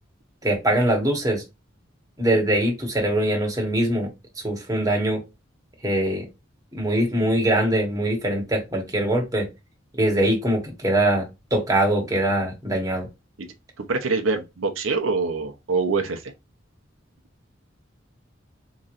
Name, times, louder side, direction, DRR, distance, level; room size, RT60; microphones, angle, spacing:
voice 1, 0.4-1.4 2.2-4.1 4.4-5.2 5.8-6.3 6.7-9.5 9.9-13.1, right 1 dB, 20° right, 1.2 m, -22 dB
voice 2, 13.8-16.3, right 4 dB, 85° right, 0.7 m, -25 dB
3.9 x 3.1 x 2.5 m
head